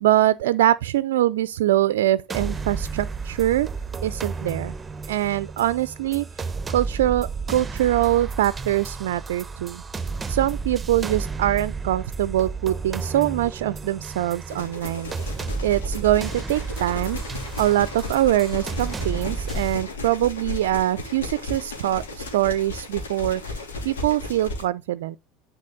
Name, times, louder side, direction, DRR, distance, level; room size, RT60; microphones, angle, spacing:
voice 1, 0.0-3.7 4.0-4.7 5.1-6.3 6.7-9.8 10.3-15.1 15.6-17.2 17.6-25.2, right 14 dB, 75° right, 0.4 m, -23 dB
sound 1, 2.3-19.7, right 4 dB, 20° right, 0.9 m, -32 dB
sound 2, 14.5-24.6, left 3 dB, 80° left, 2.9 m, -35 dB
10.5 x 5.0 x 3.9 m
hypercardioid pair, 75°, 0 cm